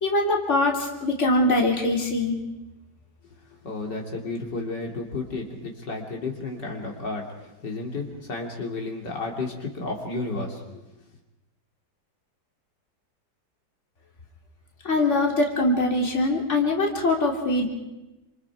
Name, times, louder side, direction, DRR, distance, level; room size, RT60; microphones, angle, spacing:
voice 1, 0.0-2.4 14.8-17.7, left 2 dB, 40° left, 0 dB, 3.4 m, -22 dB
voice 2, 3.6-10.8, left 3 dB, 75° left, 1 dB, 3.3 m, -32 dB
28.0 x 27.0 x 4.8 m, 1.0 s
omnidirectional pair, 1.9 m